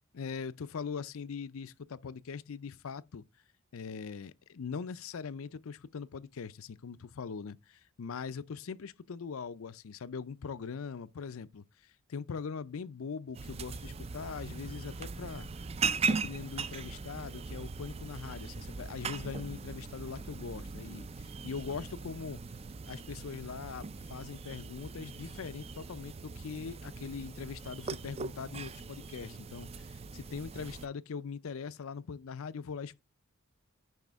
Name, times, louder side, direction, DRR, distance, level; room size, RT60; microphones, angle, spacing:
voice 1, 0.1-3.2 3.7-15.5 16.0-22.4 22.9-33.0, left 5 dB, 70° left, 0.5 m, -41 dB
sound 1, 13.3-30.9, right 4 dB, 30° right, 0.4 m, -39 dB
9.1 x 5.3 x 3.5 m
head